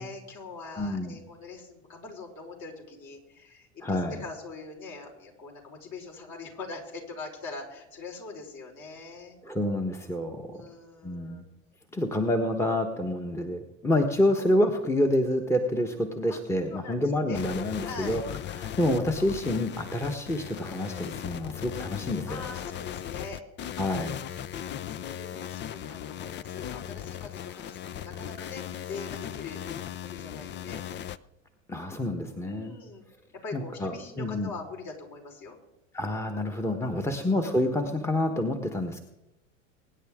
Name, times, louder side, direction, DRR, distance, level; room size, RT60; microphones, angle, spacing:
voice 1, 0.0-9.4 10.4-11.4 16.3-16.4 16.7-17.4 17.8-18.2 22.3-23.4 24.9-30.8 32.4-33.0 33.3-35.6 36.9-37.1, left 3 dB, 45° left, 0 dB, 4.7 m, -43 dB
voice 2, 0.8-1.1 3.8-4.2 9.4-10.6 11.0-11.4 11.9-18.2 18.6-22.5 23.8-24.2 31.7-32.8 33.5-34.5 35.9-39.0, left 1 dB, 5° left, 5 dB, 1.3 m, -28 dB
sound 1, 17.3-31.2, left 10 dB, 30° left, 0.5 m, -38 dB
23.5 x 9.8 x 3.7 m, 0.98 s
hypercardioid pair, 85°, 39 cm